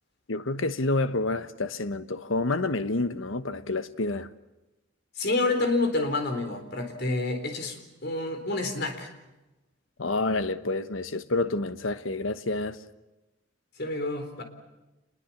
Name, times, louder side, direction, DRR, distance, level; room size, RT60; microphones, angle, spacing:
voice 1, 0.3-4.3 10.0-12.8, left 2 dB, 85° left, 1.2 m, -28 dB
voice 2, 5.2-9.1 13.8-14.4, left 2 dB, 55° left, 4.0 m, -28 dB
27.5 x 21.5 x 7.3 m
head